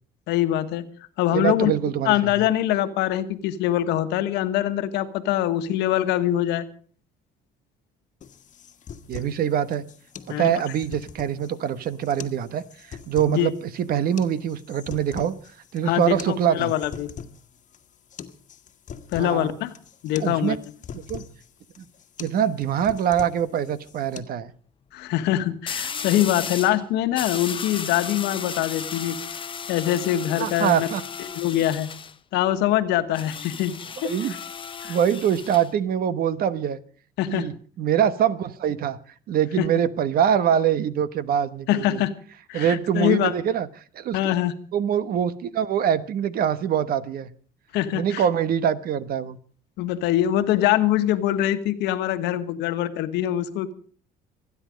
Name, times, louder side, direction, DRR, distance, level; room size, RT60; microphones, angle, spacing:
voice 1, 0.3-0.9 1.2-1.7 2.0-6.7 10.3-10.6 13.3-13.5 15.8-17.1 19.1-19.7 20.0-20.6 24.9-29.2 29.7-30.9 31.3-31.9 32.3-34.1 34.8-35.0 37.2-37.5 39.6-39.7 41.7-42.1 42.5-43.3 44.1-44.5 47.7-48.2 49.8-53.7, left 12 dB, 90° left, 10 dB, 1.4 m, -23 dB
voice 2, 1.3-2.5 9.1-9.8 10.3-15.3 15.7-16.7 19.2-19.5 20.2-20.6 20.9-21.2 21.8-21.9 22.2-24.5 30.4-31.0 34.0-34.4 34.9-36.8 37.3-39.0 39.3-42.0 42.5-43.7 43.9-44.3 44.7-47.3 47.9-49.4, right 9 dB, 60° right, 15 dB, 1.2 m, -24 dB
sound 1, 8.2-24.2, left 7 dB, 45° left, 1.4 m, -42 dB
sound 2, 22.5-22.8 25.7-26.8 27.1-32.1 33.1-35.7, left 6 dB, 30° left, 0.9 m, -35 dB
25.5 x 9.9 x 5.2 m, 0.43 s
cardioid pair, 110°, 17 cm